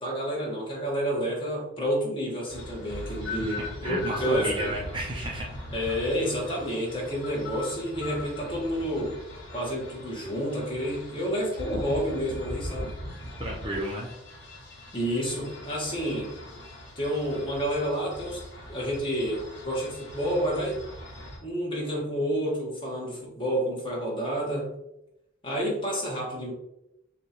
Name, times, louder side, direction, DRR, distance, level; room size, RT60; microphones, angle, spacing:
voice 1, 0.0-4.7 5.7-9.2 9.5-12.9 14.9-16.3 16.9-18.4 18.7-20.8 21.4-24.7 25.4-26.5, equal, 25° left, -3 dB, 1.3 m, -29 dB
sound 1, 2.5-21.4, left 1 dB, 60° left, 1.4 m, -40 dB
voice 2, 3.8-5.5 13.4-14.1, right 1 dB, 25° right, -3 dB, 0.7 m, -32 dB
6.5 x 2.5 x 2.9 m, 0.85 s
head